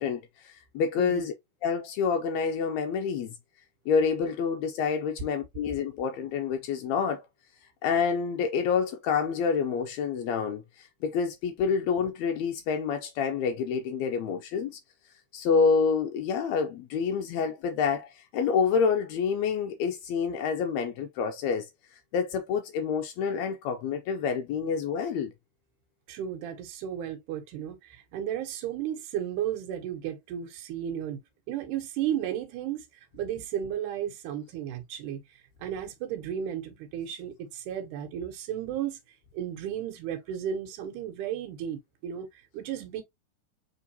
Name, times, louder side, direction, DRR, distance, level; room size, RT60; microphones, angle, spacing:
voice 1, 0.0-1.3 1.6-3.3 3.9-7.2 7.8-14.8 15.3-21.7 22.1-25.3, left 6 dB, 90° left, 1.6 m, -28 dB
voice 2, 26.1-31.2 31.5-32.8 33.1-35.2 35.6-39.0 39.3-43.0, right 10 dB, 80° right, 2.3 m, -34 dB
4.6 x 3.6 x 2.7 m
omnidirectional pair, 3.7 m